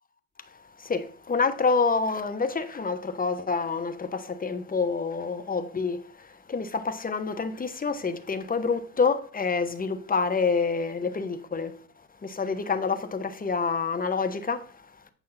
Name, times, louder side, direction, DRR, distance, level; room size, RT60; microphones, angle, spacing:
voice 1, 0.5-11.8 12.2-14.9, left 4 dB, 20° left, 1.2 m, -28 dB
9.0 x 5.5 x 4.3 m
supercardioid pair, 75°, 39 cm